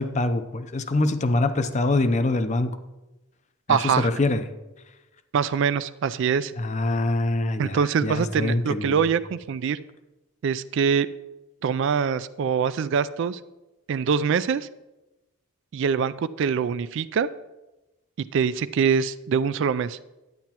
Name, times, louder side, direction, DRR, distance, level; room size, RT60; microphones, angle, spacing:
voice 1, 0.0-2.8 3.7-4.4 6.6-9.0, left 2 dB, 35° left, 10 dB, 0.5 m, -24 dB
voice 2, 3.7-4.1 5.3-6.5 7.6-9.8 10.4-11.1 11.6-13.4 13.9-14.7 15.7-17.3 18.2-20.0, right 6 dB, 60° right, 15 dB, 0.3 m, -24 dB
10.5 x 9.2 x 2.9 m, 1.0 s
head